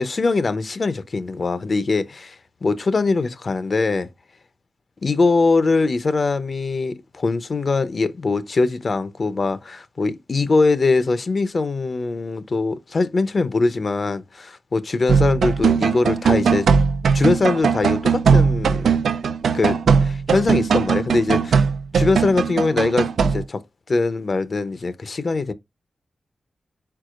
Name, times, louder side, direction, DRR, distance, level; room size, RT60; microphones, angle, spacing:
voice 1, 0.0-4.1 5.0-16.7 17.1-18.9 19.5-21.7 21.9-23.6 23.9-25.5, left 3 dB, 50° left, 0.7 m, -22 dB
sound 1, 15.1-23.4, right 6 dB, 90° right, 0.4 m, -19 dB
4.7 x 4.3 x 2.4 m
cardioid pair, 65°, 0 cm